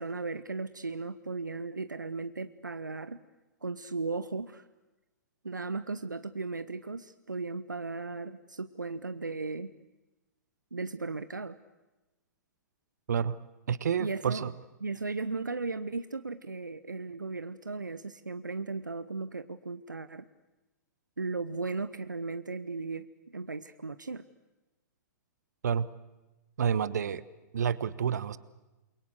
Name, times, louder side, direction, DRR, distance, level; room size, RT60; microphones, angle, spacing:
voice 1, 0.0-3.2 3.6-4.6 5.4-9.7 10.7-11.6 14.0-14.5 14.8-20.3 21.2-24.3, right 3 dB, 85° right, 12 dB, 0.9 m, -36 dB
voice 2, 13.1-13.4 13.7-14.5 25.6-25.9 26.6-27.2 27.5-28.4, right 7 dB, 65° right, 18 dB, 1.1 m, -29 dB
28.0 x 23.0 x 8.1 m, 1.1 s
figure-of-eight pair, 110°, 10 cm